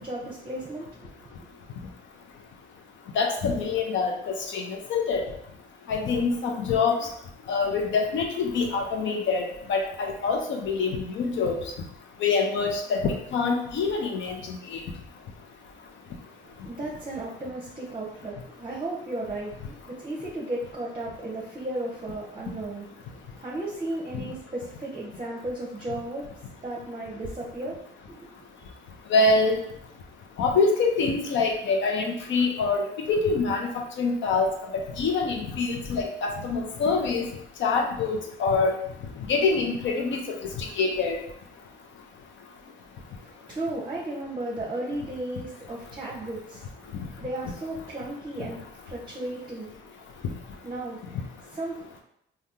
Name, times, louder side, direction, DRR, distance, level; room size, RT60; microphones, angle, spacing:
voice 1, 0.0-1.5 16.2-27.8 28.1-28.2 28.6-28.7 43.0-50.1 50.6-52.0, right 1 dB, 25° right, -3 dB, 0.7 m, -35 dB
voice 2, 3.2-4.1 4.5-5.2 5.9-6.9 7.5-9.4 9.7-11.5 12.2-14.4 14.7-14.8 29.1-29.6 30.4-33.7 34.0-34.5 35.0-37.3 37.6-38.7 39.3-40.2 40.6-41.2, left 4 dB, 70° left, 2 dB, 0.7 m, -25 dB
3.4 x 2.3 x 2.7 m, 0.74 s
cardioid pair, 90°, 20 cm